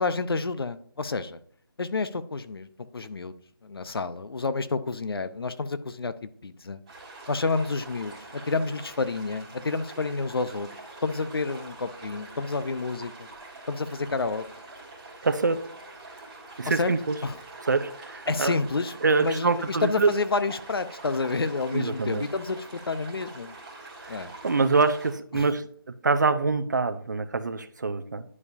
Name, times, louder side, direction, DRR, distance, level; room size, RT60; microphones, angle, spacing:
voice 1, 0.0-1.4 1.8-2.7 2.9-3.3 3.6-6.8 7.3-10.7 11.0-13.3 13.7-14.4 16.7-16.9 17.2-17.4 18.3-23.5 24.1-24.3 25.3-25.5, left 3 dB, 75° left, 12 dB, 0.7 m, -29 dB
sound 1, 6.9-25.1, right 2 dB, 15° right, 1.9 m, -45 dB
voice 2, 15.2-15.6 16.6-17.2 17.6-18.6 19.0-20.1 21.7-22.2 24.0-25.6 26.0-28.2, right 4 dB, 50° right, 9 dB, 0.7 m, -25 dB
11.0 x 4.8 x 2.7 m, 0.63 s
figure-of-eight pair, 175°, 13 cm